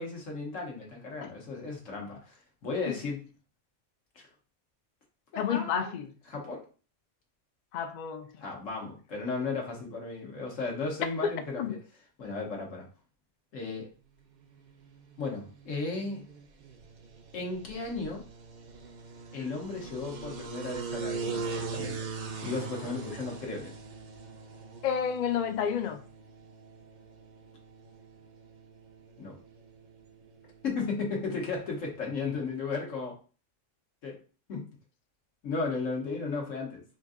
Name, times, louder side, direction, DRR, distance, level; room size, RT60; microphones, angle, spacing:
voice 1, 0.0-3.2 4.1-4.3 5.3-5.9 6.3-6.6 8.4-11.8 12.2-12.9 13.5-13.9 15.2-16.2 17.3-18.2 19.3-22.1 22.4-23.8 29.2-29.4 30.6-33.2 34.0-34.1 34.5-34.7 35.4-36.8, left 4 dB, 85° left, 1.5 m, -35 dB
voice 2, 5.4-6.1 7.7-8.3 11.2-11.8 24.8-26.0, left 7 dB, 70° left, 0.4 m, -30 dB
sound 1, 14.4-32.5, right 4 dB, 55° right, 0.5 m, -42 dB
5.2 x 2.6 x 2.5 m
omnidirectional pair, 1.3 m